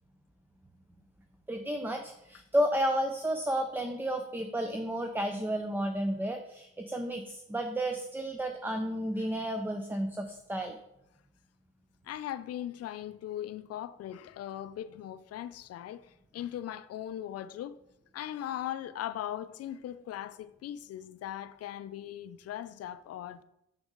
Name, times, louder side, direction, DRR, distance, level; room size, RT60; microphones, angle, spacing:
voice 1, 1.5-10.8, equal, 5° right, 0.4 m, -32 dB
voice 2, 12.0-17.8 18.1-23.4, left 11 dB, 55° left, 0.4 m, -39 dB
6.0 x 5.4 x 3.7 m
cardioid pair, 90°, 30 cm